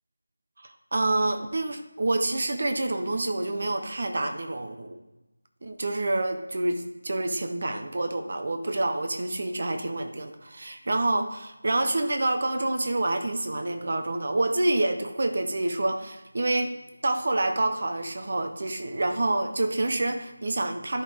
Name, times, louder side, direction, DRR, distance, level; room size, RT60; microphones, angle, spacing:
voice 1, 0.6-5.0 5.6-16.7 17.0-21.0, right 2 dB, 50° right, 6 dB, 0.9 m, -27 dB
11.0 x 5.4 x 3.6 m, 1.0 s
figure-of-eight pair, 170°, 0 cm